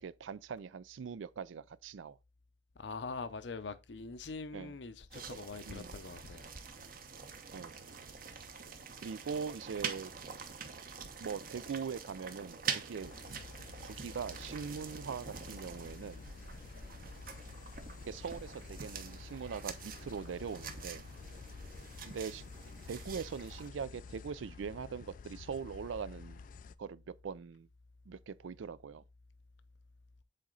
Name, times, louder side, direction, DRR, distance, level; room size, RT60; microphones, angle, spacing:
voice 1, 0.0-2.2 4.5-4.7 5.7-6.0 7.5-7.7 9.0-10.1 11.2-13.1 13.8-16.3 18.1-21.0 22.0-22.4 22.9-26.4 26.8-27.7 28.1-29.0, right 6 dB, 85° right, 0.4 m, -42 dB
voice 2, 2.8-6.4, left 4 dB, 70° left, 0.7 m, -43 dB
sound 1, 5.1-23.7, right 6 dB, 50° right, 0.9 m, -45 dB
sound 2, 13.0-26.8, left 5 dB, 45° left, 0.3 m, -50 dB
7.6 x 4.2 x 3.8 m
head